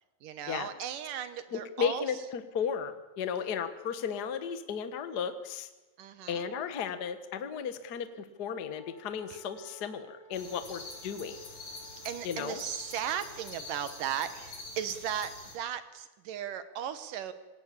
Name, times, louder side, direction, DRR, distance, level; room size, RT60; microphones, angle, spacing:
voice 1, 0.2-2.0 6.0-6.4 9.3-9.4 12.0-17.3, right 9 dB, 70° right, 11 dB, 2.7 m, -36 dB
voice 2, 1.5-5.7 6.3-11.4 12.2-12.6, left 7 dB, 65° left, 10 dB, 0.9 m, -34 dB
Wind instrument woodwind instrument, 8.7-14.6, right 4 dB, 30° left, 6.5 m, -57 dB
sound 1, 10.3-15.6, left 3 dB, 50° left, 5.3 m, -46 dB
26.0 x 19.0 x 8.6 m, 1.1 s
omnidirectional pair, 4.2 m